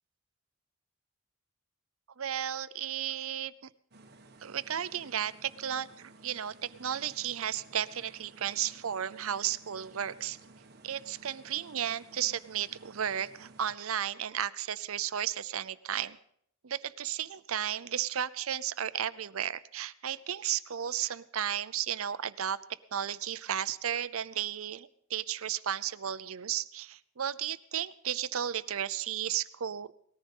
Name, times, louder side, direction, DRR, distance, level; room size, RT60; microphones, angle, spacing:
voice 1, 2.2-3.5 4.4-10.4 10.8-16.2 16.6-22.6 22.9-29.9, right 10 dB, 75° right, 16 dB, 0.6 m, -34 dB
sound 1, 3.9-13.7, right 3 dB, 45° right, 1.3 m, -56 dB
19.0 x 14.0 x 5.4 m, 0.68 s
head